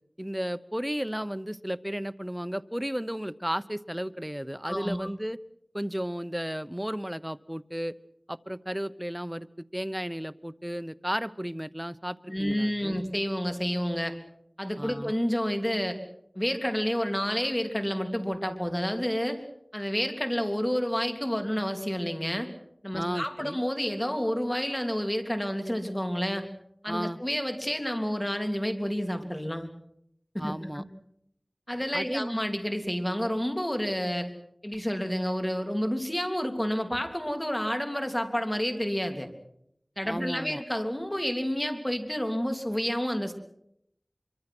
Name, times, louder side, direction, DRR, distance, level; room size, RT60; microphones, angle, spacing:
voice 1, 0.2-5.4 5.7-8.0 8.3-13.0 14.8-15.1 22.9-23.6 26.9-27.2 30.4-30.8 31.9-32.4 40.1-40.6, equal, 10° right, 13 dB, 0.9 m, -34 dB
voice 2, 4.7-5.1 12.3-14.1 14.6-16.0 16.3-19.4 19.7-22.5 22.8-26.5 26.8-29.7 30.3-30.8 31.7-34.3 34.6-39.3 40.0-43.3, equal, 15° left, 6 dB, 3.3 m, -29 dB
24.5 x 24.0 x 6.2 m, 0.74 s
wide cardioid pair, 40°, 0 cm